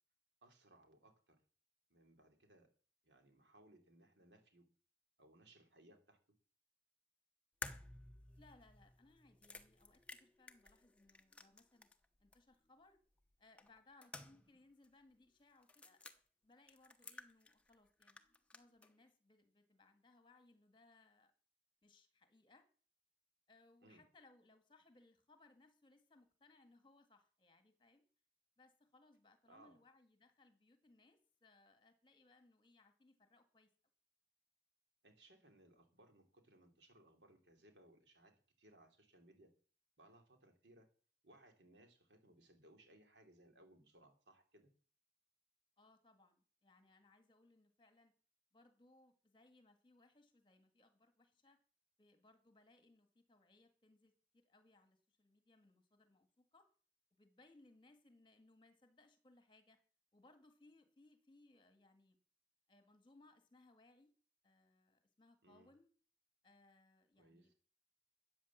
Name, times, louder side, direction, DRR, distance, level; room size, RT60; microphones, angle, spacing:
voice 1, 0.4-1.4 1.9-2.7 3.0-4.6 5.2-6.2 23.8-24.0 29.5-29.8 35.0-38.3 38.6-39.5 40.0-40.9 41.2-44.7 65.4-65.7 67.2-67.5, right 1 dB, 85° right, 5 dB, 3.1 m, -66 dB
sound 1, 7.6-12.1 12.3-12.4 13.6-14.6 14.8-14.9 15.6-16.2 16.7-17.8 18.0-18.9, left 2 dB, 5° left, 0.9 m, -53 dB
voice 2, 8.4-11.9 12.2-13.0 13.4-18.2 18.5-21.3 21.8-22.7 23.5-28.1 28.6-33.7 45.8-48.1 48.5-51.6 52.0-56.7 57.1-59.8 60.1-62.2 62.7-64.1 64.4-65.9 66.4-67.5, left 2 dB, 25° left, 8 dB, 1.8 m, -68 dB
13.5 x 8.8 x 7.3 m, 0.43 s
head